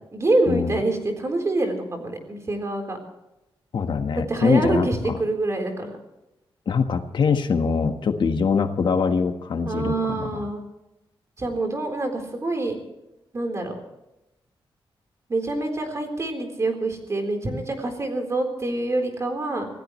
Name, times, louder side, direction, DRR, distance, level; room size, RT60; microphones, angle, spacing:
voice 1, 0.1-3.0 4.2-6.0 9.7-10.6 11.4-12.8 13.3-13.8 15.3-19.7, right 2 dB, 35° right, 4 dB, 4.0 m, -26 dB
voice 2, 3.7-4.9 6.7-10.4, left 5 dB, 60° left, 6 dB, 1.5 m, -23 dB
26.5 x 17.0 x 3.2 m, 0.93 s
wide cardioid pair, 125°, 9 cm